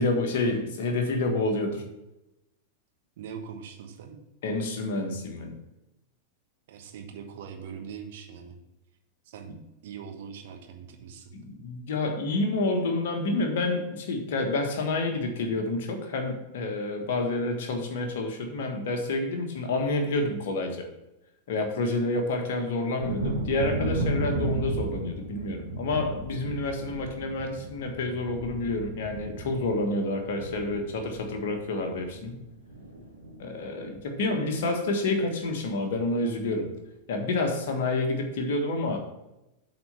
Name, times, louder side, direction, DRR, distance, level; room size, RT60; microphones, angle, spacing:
voice 1, 0.0-1.8 4.4-5.6 11.3-20.9 21.5-32.4 33.4-36.7 37.1-39.0, left 2 dB, 55° left, 3 dB, 1.6 m, -28 dB
voice 2, 3.2-4.2 6.7-8.6 9.3-9.6 9.8-11.3 34.2-34.4, right 7 dB, 55° right, 3 dB, 1.3 m, -42 dB
Thunder, 23.0-32.4 32.7-33.4 33.8-33.9 34.3-34.5, right 2 dB, 75° right, 1.5 m, -34 dB
7.9 x 4.3 x 6.9 m, 0.94 s
figure-of-eight pair, 90°, 0 cm